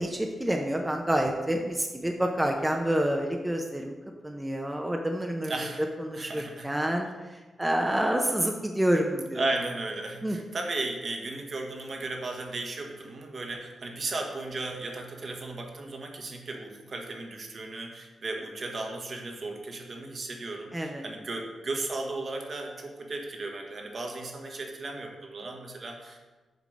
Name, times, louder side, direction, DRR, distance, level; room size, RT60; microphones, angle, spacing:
voice 1, 0.0-3.9 4.2-5.5 6.0-7.1 7.6-9.4 10.2-10.4 20.7-21.0, right 1 dB, 10° right, 2 dB, 0.7 m, -28 dB
voice 2, 5.5-6.7 9.3-26.2, right 2 dB, 50° right, 2 dB, 1.2 m, -35 dB
6.7 x 3.7 x 6.4 m, 1.3 s
cardioid pair, 70°, 0 cm